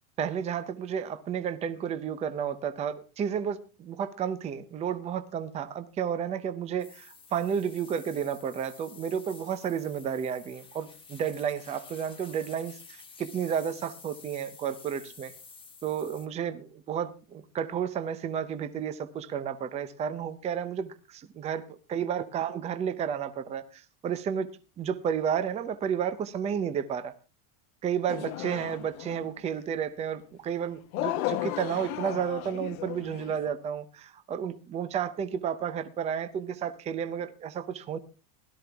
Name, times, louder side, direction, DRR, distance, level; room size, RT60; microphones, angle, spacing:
voice 1, 0.2-15.3 15.8-24.5 24.8-27.1 27.8-38.0, right 8 dB, 15° right, 11 dB, 0.6 m, -32 dB
sound 1, 6.8-16.3, left 5 dB, 10° left, 1.2 m, -51 dB
sound 2, 28.1-29.3 30.9-33.5, left 16 dB, 65° left, 1.1 m, -34 dB
17.0 x 12.5 x 3.4 m, 0.34 s
supercardioid pair, 165°, 45 cm